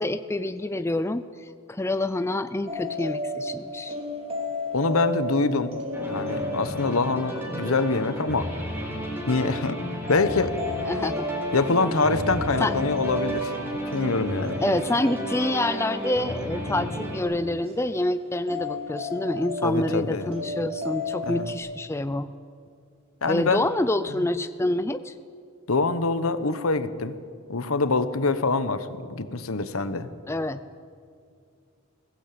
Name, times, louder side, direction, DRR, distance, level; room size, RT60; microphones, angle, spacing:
voice 1, 0.0-4.0 10.9-11.3 12.6-12.8 14.6-22.3 23.3-25.1 30.3-30.6, left 1 dB, 10° left, 11 dB, 0.4 m, -27 dB
sound 1, 2.7-9.5 10.1-17.7 18.5-21.5, left 2 dB, 25° right, 3.2 m, -34 dB
voice 2, 4.7-5.8 6.1-8.5 9.3-9.8 10.1-10.6 11.5-14.6 19.6-20.3 21.2-21.5 23.2-23.6 24.1-24.3 25.7-27.1 27.5-30.1, left 3 dB, 70° left, 12 dB, 1.1 m, -25 dB
sound 2, 5.9-17.2, right 1 dB, 10° right, 4.1 m, -33 dB
21.0 x 16.5 x 8.6 m, 2.3 s
head